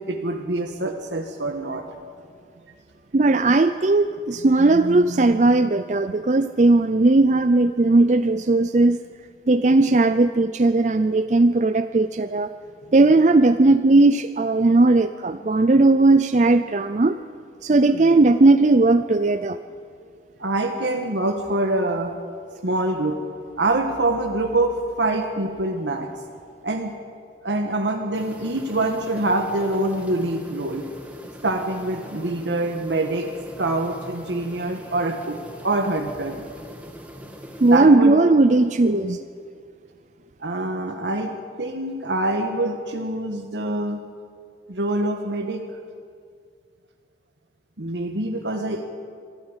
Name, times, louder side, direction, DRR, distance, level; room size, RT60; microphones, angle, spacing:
voice 1, 0.1-1.8 17.9-18.2 20.4-22.1 22.5-23.2 23.6-26.1 26.6-26.9 27.4-30.8 31.4-33.3 33.6-35.4 35.6-36.4 37.6-38.1 38.8-39.0 40.4-41.3 41.6-44.0 44.7-45.6 47.8-48.9, right 2 dB, 85° right, 4 dB, 1.5 m, -25 dB
voice 2, 3.1-9.0 9.5-12.5 12.9-17.2 17.6-19.6 37.6-39.2, right 2 dB, 40° right, 11 dB, 0.5 m, -17 dB
sound 1, 28.1-37.8, equal, 10° right, 2.0 m, -42 dB
24.5 x 12.5 x 9.7 m, 2.2 s
head